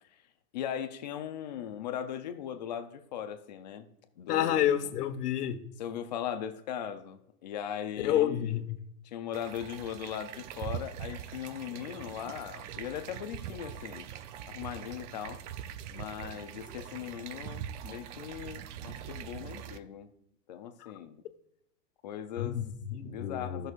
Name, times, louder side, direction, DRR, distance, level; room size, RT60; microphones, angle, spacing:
voice 1, 0.5-3.9 4.2-4.7 5.8-8.5 9.0-14.1 14.5-15.4 15.9-20.1 20.5-21.2 22.0-22.6 22.9-23.7, left 9 dB, 30° left, 8 dB, 0.4 m, -39 dB
voice 2, 4.3-5.6 8.0-8.8 20.8-20.9 22.4-23.7, left 11 dB, 75° left, 8 dB, 1.2 m, -29 dB
sound 1, 9.3-19.8, right 10 dB, 50° right, 0.5 m, -42 dB
16.5 x 6.2 x 2.4 m, 0.76 s
supercardioid pair, 150°, 47 cm